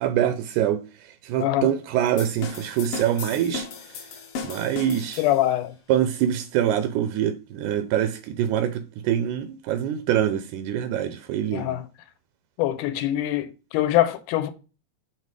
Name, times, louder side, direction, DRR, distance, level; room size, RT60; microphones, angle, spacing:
voice 1, 0.0-4.1 4.4-5.2 5.9-11.8, right 10 dB, 80° right, 2.0 m, -25 dB
voice 2, 1.4-1.7 5.2-5.7 11.5-11.8 12.6-14.5, left 13 dB, 85° left, 2.2 m, -23 dB
sound 1, 2.2-5.6, left 5 dB, 60° left, 1.6 m, -36 dB
6.5 x 4.1 x 4.8 m
omnidirectional pair, 3.6 m